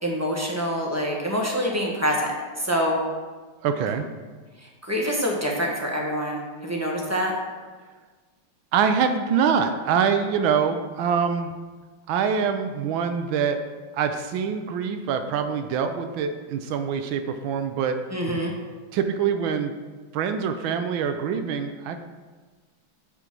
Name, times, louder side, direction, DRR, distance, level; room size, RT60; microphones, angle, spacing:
voice 1, 0.0-3.0 4.6-7.4 18.1-18.5, equal, 10° right, -1 dB, 1.0 m, -26 dB
voice 2, 3.6-4.0 8.7-11.5 12.1-13.6 13.9-18.0 18.9-19.7 20.1-22.0, right 7 dB, 85° right, 7 dB, 1.4 m, -24 dB
8.3 x 5.1 x 5.9 m, 1.4 s
omnidirectional pair, 2.1 m